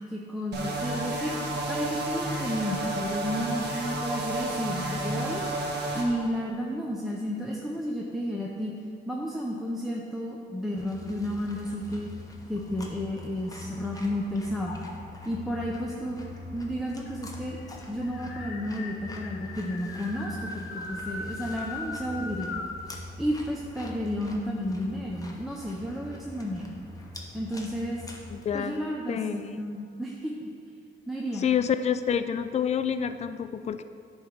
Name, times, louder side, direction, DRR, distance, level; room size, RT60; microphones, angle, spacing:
voice 1, 0.0-1.4 1.7-5.4 5.9-8.7 9.1-12.1 12.5-14.8 15.3-16.2 16.5-17.6 17.9-22.5 23.2-26.7 27.3-28.0 28.5-30.3 31.1-31.4, equal, ahead, -3 dB, 0.7 m, -32 dB
sound 1, 0.5-6.0, right 2 dB, 60° right, 1.1 m, -31 dB
sound 2, 10.8-28.5, left 2 dB, 15° left, 1.0 m, -43 dB
sound 3, 12.6-14.1 14.6-15.3 16.3-16.4 16.6-16.7 17.1-22.8, left 3 dB, 75° left, 0.9 m, -40 dB
voice 2, 28.3-28.7 29.1-29.6 31.4-33.8, left 8 dB, 35° left, 10 dB, 0.4 m, -28 dB
8.6 x 3.2 x 6.0 m, 2.3 s
cardioid pair, 90°, 20 cm